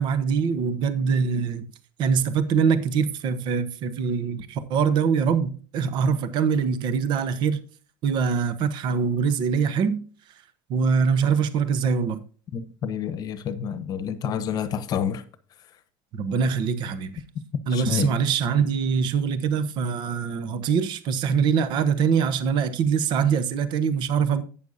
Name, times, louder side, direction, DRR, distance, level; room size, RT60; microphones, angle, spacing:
voice 1, 0.0-1.6 2.0-7.6 8.0-10.0 10.7-12.2 16.1-17.1 17.7-24.4, right 6 dB, 45° right, 0.9 m, -23 dB
voice 2, 12.5-15.2 17.7-18.1, left 8 dB, 40° left, 1.0 m, -28 dB
11.5 x 8.7 x 2.7 m
cardioid pair, 145°, 11 cm